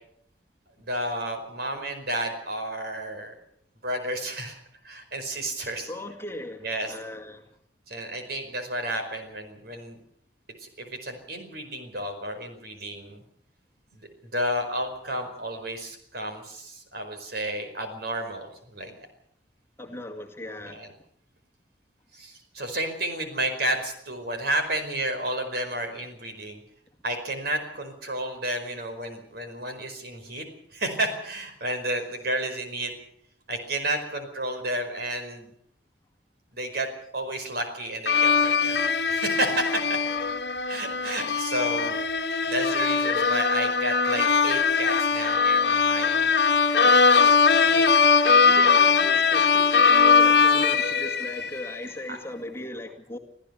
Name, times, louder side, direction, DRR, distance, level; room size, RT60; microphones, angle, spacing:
voice 1, 0.8-3.4 3.8-4.6 4.8-5.9 6.6-7.0 7.9-10.0 10.6-13.2 13.9-19.1 20.6-20.9 22.1-26.6 27.0-30.4 30.7-32.9 33.5-35.5 36.5-38.8 39.1-40.0 40.7-42.0 42.5-46.3 52.1-52.2, right 1 dB, 60° right, 6 dB, 5.0 m, -31 dB
voice 2, 5.6-7.5 19.8-20.9 47.2-48.1 48.4-53.2, left 1 dB, 15° left, 2 dB, 2.1 m, -38 dB
sound 1, 38.1-51.7, left 5 dB, 65° left, 1.3 m, -21 dB
26.0 x 15.0 x 6.9 m, 0.69 s
head